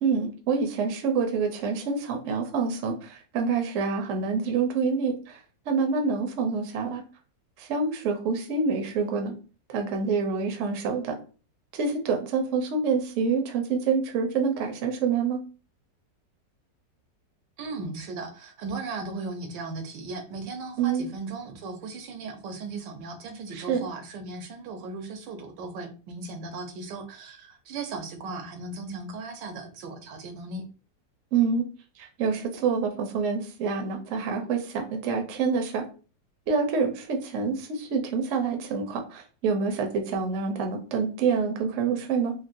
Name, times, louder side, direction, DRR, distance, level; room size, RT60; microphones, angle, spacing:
voice 1, 0.0-5.4 5.7-7.0 7.6-9.3 9.7-11.1 11.7-15.4 20.8-21.1 23.5-23.9 31.3-31.6 32.2-35.8 36.5-42.3, right 5 dB, 65° right, 4 dB, 0.8 m, -27 dB
voice 2, 17.6-30.6, right 3 dB, 85° right, 4 dB, 1.4 m, -37 dB
3.7 x 2.1 x 2.5 m, 0.36 s
omnidirectional pair, 1.9 m